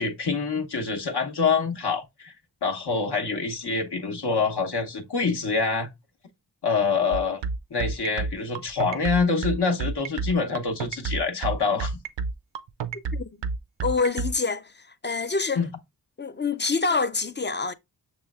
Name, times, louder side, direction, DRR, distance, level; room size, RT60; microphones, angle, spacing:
voice 1, 0.0-2.3 2.6-5.9 6.6-7.4 7.7-12.0 15.5-15.7, left 4 dB, 65° left, 1.0 m, -26 dB
sound 1, 7.1-14.3, right 4 dB, 85° right, 0.6 m, -29 dB
voice 2, 12.9-13.3 13.8-14.6 15.0-15.6 16.2-17.7, left 4 dB, 30° left, 0.4 m, -26 dB
6.6 x 3.1 x 2.3 m
cardioid pair, 50°, 42 cm